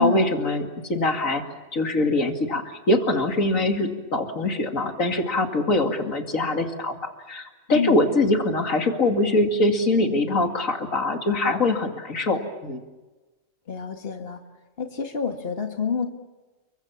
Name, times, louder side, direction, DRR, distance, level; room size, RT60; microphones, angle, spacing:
voice 1, 0.0-1.4 1.7-7.0 7.3-12.8, left 2 dB, 90° left, 5 dB, 2.9 m, -23 dB
voice 2, 13.7-14.4 14.8-16.1, left 5 dB, 45° left, 5 dB, 2.2 m, -27 dB
30.0 x 23.5 x 7.3 m, 1.2 s
omnidirectional pair, 1.3 m